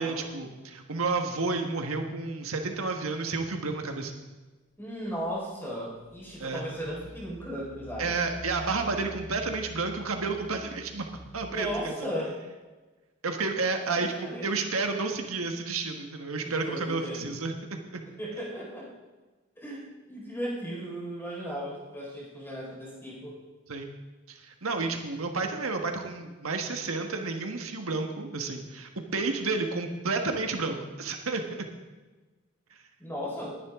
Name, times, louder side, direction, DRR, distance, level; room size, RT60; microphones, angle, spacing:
voice 1, 0.0-4.1 6.4-6.6 8.0-11.1 11.3-11.9 13.2-17.5 17.9-18.0 23.7-23.9 24.3-31.7, right 3 dB, 90° right, 4 dB, 1.5 m, -31 dB
voice 2, 4.8-8.1 11.5-12.3 14.2-14.5 16.4-17.4 18.2-18.9 19.6-23.4 33.0-33.5, equal, 10° left, -6 dB, 4.7 m, -36 dB
Engine, 5.4-5.5 6.1-12.0, equal, 30° left, 1.0 m, -47 dB
20.5 x 10.0 x 3.7 m, 1.2 s
head